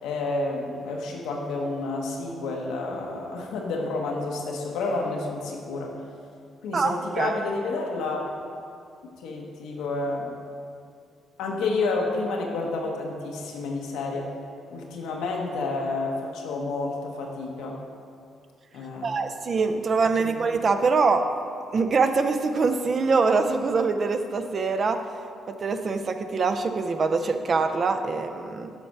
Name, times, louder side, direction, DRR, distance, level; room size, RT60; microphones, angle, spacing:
voice 1, 0.0-5.9 6.6-8.2 9.2-10.3 11.4-14.3 14.7-17.8 18.7-19.2 20.2-20.4, left 3 dB, 90° left, 0 dB, 1.1 m, -30 dB
voice 2, 6.7-7.4 19.0-21.2 21.7-25.0 25.5-28.7, right 4 dB, 45° right, 7 dB, 0.5 m, -24 dB
7.8 x 4.2 x 6.0 m, 2.4 s
cardioid pair, 90°, 0 cm